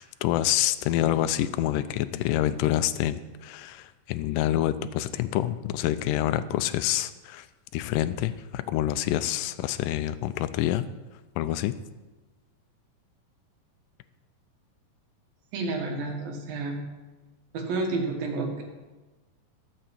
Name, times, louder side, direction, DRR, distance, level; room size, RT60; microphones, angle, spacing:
voice 1, 0.0-7.5 7.7-10.9 11.4-11.8, left 13 dB, 80° left, 13 dB, 2.2 m, -27 dB
voice 2, 15.5-16.8 17.5-18.6, right 3 dB, 90° right, 2 dB, 3.4 m, -30 dB
12.5 x 6.7 x 7.3 m, 1.2 s
omnidirectional pair, 4.0 m